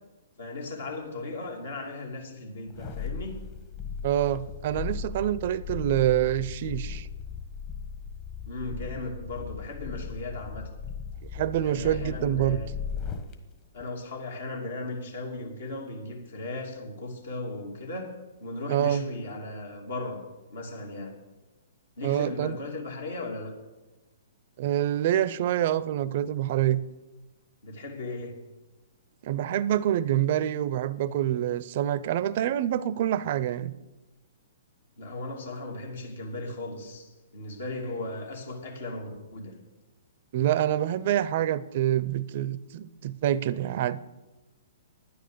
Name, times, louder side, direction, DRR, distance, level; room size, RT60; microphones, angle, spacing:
voice 1, 0.4-3.4 8.5-10.7 11.6-12.7 13.7-20.2 20.5-21.2 22.0-23.5 27.6-28.4 35.0-39.6, left 2 dB, 70° left, 1 dB, 2.7 m, -37 dB
sound 1, 2.7-13.3 13.8-13.9, left 6 dB, 35° left, 1.4 m, -37 dB
voice 2, 4.0-7.1 11.3-12.6 18.7-19.0 22.0-22.6 24.6-26.8 29.2-33.7 40.3-44.0, right 12 dB, 50° right, 17 dB, 0.6 m, -26 dB
10.0 x 9.8 x 6.8 m, 1.1 s
hypercardioid pair, 120°, 0 cm